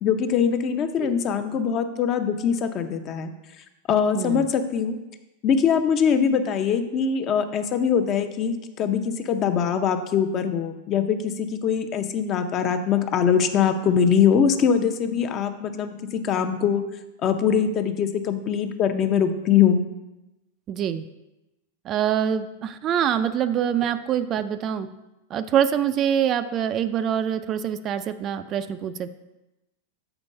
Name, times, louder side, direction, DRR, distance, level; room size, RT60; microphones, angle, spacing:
voice 1, 0.0-3.3 3.9-5.0 5.4-16.0 16.2-16.9 17.2-19.8, left 7 dB, 35° left, 8 dB, 0.6 m, -22 dB
voice 2, 4.2-4.5 20.7-21.1 21.8-24.9 25.3-29.1, right 9 dB, 35° right, 11 dB, 0.3 m, -25 dB
7.0 x 4.4 x 5.3 m, 0.99 s
hypercardioid pair, 130°, 0 cm